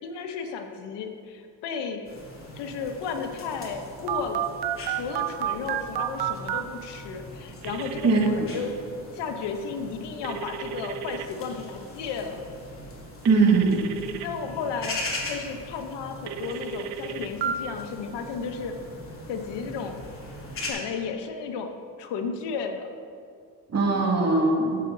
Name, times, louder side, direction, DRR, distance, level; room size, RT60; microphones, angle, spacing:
voice 1, 0.0-2.1 2.5-8.7 9.1-12.4 14.2-15.0 15.3-18.7 19.3-20.0 20.6-21.7 22.0-22.9, left 5 dB, 90° left, 5 dB, 1.2 m, -33 dB
sound 1, 2.0-20.7, left 1 dB, 30° left, 2.5 m, -41 dB
Telephone, 4.1-6.6 7.6-8.3 10.2-11.3 13.3-14.3 16.3-17.5, right 11 dB, 70° right, 0.7 m, -31 dB
voice 2, 8.0-8.5 13.2-13.8 23.7-24.8, right 3 dB, 40° right, -1 dB, 2.3 m, -21 dB
13.0 x 7.8 x 4.0 m, 2.3 s
cardioid pair, 95°, 40 cm